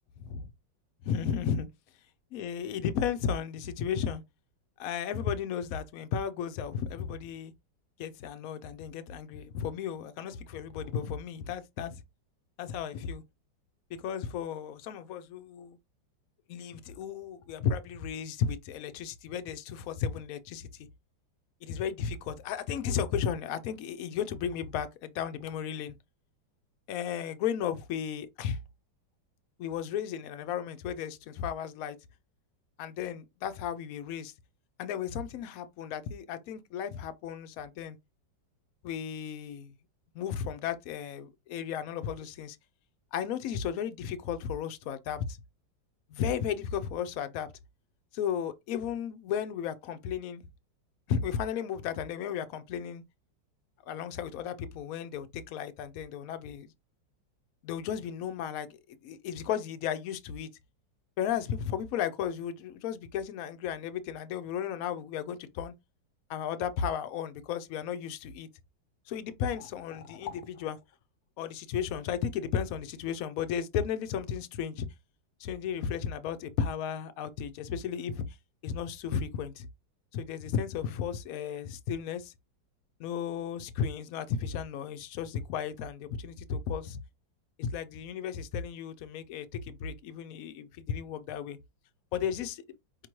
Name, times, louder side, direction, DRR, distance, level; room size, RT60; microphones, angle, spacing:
voice 1, 0.2-0.5 1.0-1.7 2.3-4.2 4.8-7.5 8.0-12.0 12.6-13.2 13.9-15.8 16.5-20.9 21.6-25.9 26.9-28.6 29.6-32.0 32.8-34.3 34.8-38.0 38.8-39.7 40.1-42.6 43.1-45.4 46.1-47.5 48.1-50.4 51.1-53.0 53.9-56.7 57.6-60.5 61.2-65.7 66.3-68.5 69.1-70.8 71.4-74.9 75.4-78.4 78.6-79.7 80.1-82.3 83.0-87.0 87.6-91.6 92.1-92.6, left 8 dB, 75° left, 0.8 m, -34 dB
5.1 x 3.0 x 3.0 m
omnidirectional pair, 2.0 m